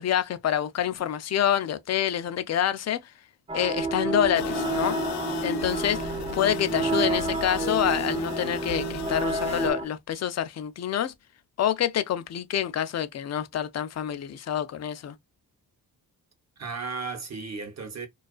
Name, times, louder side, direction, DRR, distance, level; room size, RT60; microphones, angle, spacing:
voice 1, 0.0-3.0 3.5-5.0 5.4-11.1 11.6-15.1, left 10 dB, 45° left, 0.4 m, -27 dB
sound 1, 3.5-9.9, right 3 dB, 15° right, 0.4 m, -30 dB
sound 2, 4.3-9.7, left 8 dB, 80° left, 0.7 m, -35 dB
voice 2, 6.9-7.4 16.6-18.1, right 4 dB, 40° right, 0.9 m, -36 dB
2.3 x 2.3 x 2.4 m
cardioid pair, 70°, 40 cm